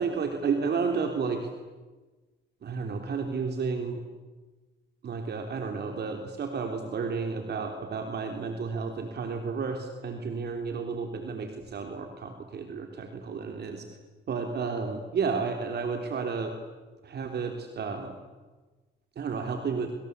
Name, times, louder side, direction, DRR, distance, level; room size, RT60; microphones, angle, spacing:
voice 1, 0.0-1.5 2.6-4.0 5.0-13.9 14.3-16.6 17.0-18.2 19.2-19.9, right 5 dB, 55° right, 5 dB, 3.6 m, -32 dB
27.5 x 25.5 x 8.4 m, 1.2 s
cardioid pair, 90°, 20 cm